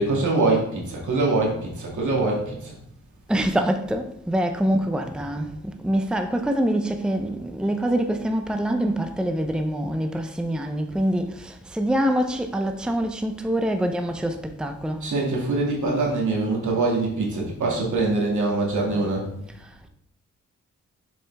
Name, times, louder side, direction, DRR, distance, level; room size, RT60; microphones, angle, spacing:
voice 1, 0.0-2.8 15.0-19.3, right 2 dB, 75° right, 2.3 m, -23 dB
voice 2, 3.3-15.1 19.6-19.9, right 1 dB, 5° right, 0.6 m, -25 dB
7.0 x 5.0 x 3.4 m
cardioid pair, 75°, 30 cm